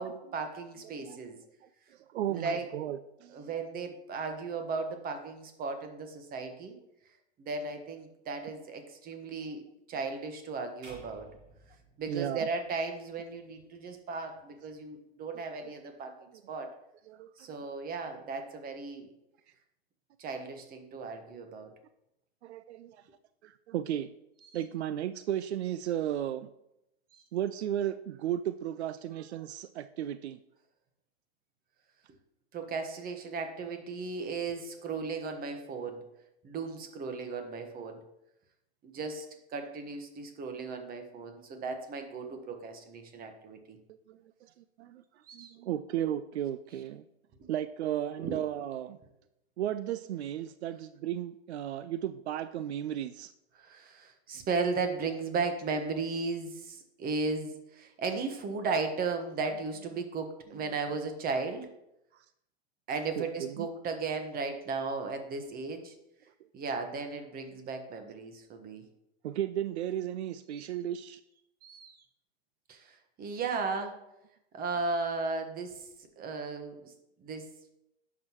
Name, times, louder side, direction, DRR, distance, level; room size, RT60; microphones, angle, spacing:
voice 1, 0.0-1.4 2.3-2.7 3.3-6.8 7.4-11.3 12.0-16.2 16.5-16.7 17.4-19.1 20.2-21.7 24.4-24.6 27.1-27.2 32.5-36.0 36.4-38.0 38.8-43.8 45.3-45.5 48.2-48.4 53.5-61.7 62.9-65.9 66.5-68.8 70.5-70.7 71.6-72.0 72.7-74.0 74.5-75.9 76.2-76.9 77.2-77.5, right 4 dB, 30° right, 6 dB, 1.3 m, -36 dB
voice 2, 2.1-3.4 12.1-12.5 17.1-17.3 22.4-23.0 23.4-24.1 24.5-26.5 27.3-30.4 44.1-44.5 44.8-45.0 45.3-47.0 47.5-49.0 49.6-53.3 63.2-63.7 69.2-71.2, right 11 dB, 85° right, 12 dB, 0.5 m, -34 dB
sound 1, 10.8-13.1, right 2 dB, 50° right, 3.3 m, -54 dB
10.5 x 6.1 x 3.0 m, 0.85 s
hypercardioid pair, 115°, 32 cm